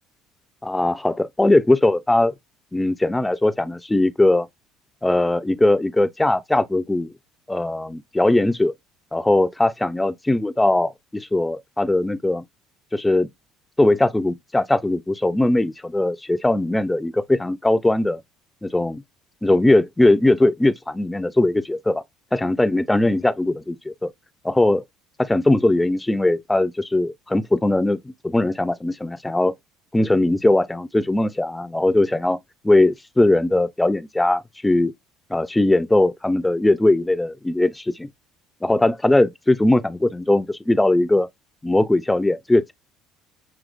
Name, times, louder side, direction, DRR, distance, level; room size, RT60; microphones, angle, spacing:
voice 1, 0.6-2.3 2.7-4.5 5.0-7.1 7.5-8.7 9.1-12.4 12.9-13.3 13.8-18.2 18.6-19.0 19.4-22.0 22.3-24.1 24.4-24.8 25.2-29.5 29.9-32.4 32.6-34.9 35.3-38.1 38.6-41.3 41.6-42.7, left 2 dB, 10° left, 0.6 m, -20 dB
6.2 x 3.0 x 2.5 m
supercardioid pair, 85°, 0 cm